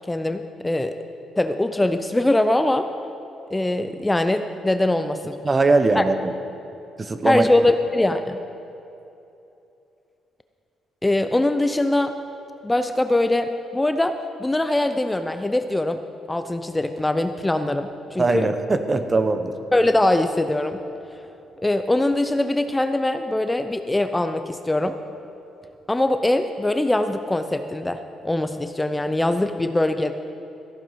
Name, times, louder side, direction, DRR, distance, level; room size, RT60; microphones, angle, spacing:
voice 1, 0.1-1.0 1.4-2.9 3.5-5.4 6.0-6.1 7.2-8.4 11.0-12.1 12.6-14.1 14.4-16.0 16.3-18.5 19.7-20.8 21.6-25.0 25.9-30.1, left 1 dB, 10° left, 9 dB, 0.5 m, -22 dB
voice 2, 5.4-6.3 7.0-7.4 18.2-19.5, right 3 dB, 30° right, 9 dB, 0.9 m, -20 dB
14.5 x 9.0 x 5.7 m, 2.9 s
cardioid pair, 90°, 0 cm